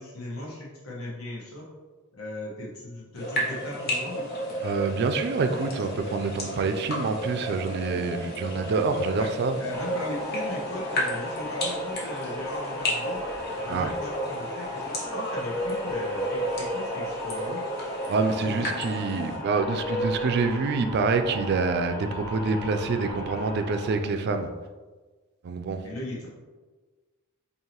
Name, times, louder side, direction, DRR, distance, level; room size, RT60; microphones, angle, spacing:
voice 1, 0.0-1.7 2.1-4.2 9.1-13.2 13.5-17.6 18.4-18.8 25.8-26.3, left 1 dB, 80° left, -4 dB, 1.2 m, -38 dB
sound 1, 3.1-19.4, equal, 45° left, 1.0 m, -33 dB
voice 2, 4.6-9.6 13.7-13.9 18.1-24.5 25.4-25.8, right 4 dB, 50° right, 7 dB, 0.3 m, -26 dB
sound 2, 9.7-24.0, left 1 dB, 15° left, 0.7 m, -35 dB
4.6 x 2.8 x 2.9 m, 1.3 s
head